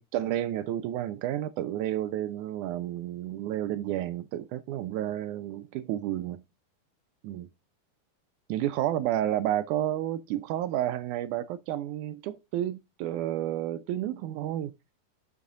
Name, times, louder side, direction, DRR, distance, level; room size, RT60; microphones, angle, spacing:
voice 1, 0.0-6.4 7.2-7.5 8.5-14.7, right 12 dB, 80° right, 1.8 m, -31 dB
7.3 x 6.8 x 3.7 m
omnidirectional pair, 3.9 m